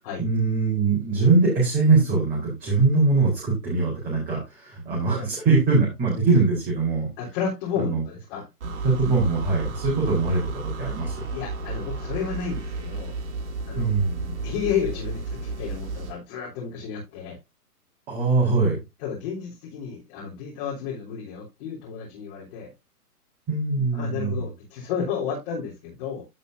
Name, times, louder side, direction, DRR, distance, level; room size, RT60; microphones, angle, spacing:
voice 1, 0.2-7.1 7.8-8.0 8.6-11.2 13.8-14.4 18.1-18.8 23.5-24.5, right 3 dB, 15° right, -4 dB, 3.8 m, -22 dB
voice 2, 7.2-8.5 11.3-13.1 13.7-13.9 14.4-17.4 19.0-22.7 23.9-26.2, left 7 dB, 35° left, -4 dB, 3.7 m, -32 dB
sound 1, 8.6-16.2, right 3 dB, 45° right, 3.0 m, -33 dB
15.0 x 5.5 x 2.6 m, 0.23 s
hypercardioid pair, 155°, 47 cm